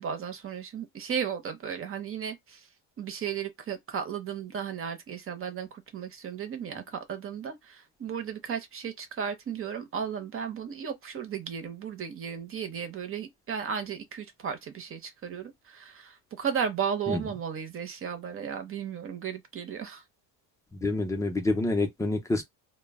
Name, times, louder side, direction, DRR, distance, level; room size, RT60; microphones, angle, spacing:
voice 1, 0.0-2.7 3.0-20.0, right 7 dB, 30° right, 0.7 m, -35 dB
voice 2, 20.7-22.4, left 2 dB, 10° left, 0.5 m, -27 dB
2.1 x 2.1 x 3.4 m
cardioid pair, 130°, 43 cm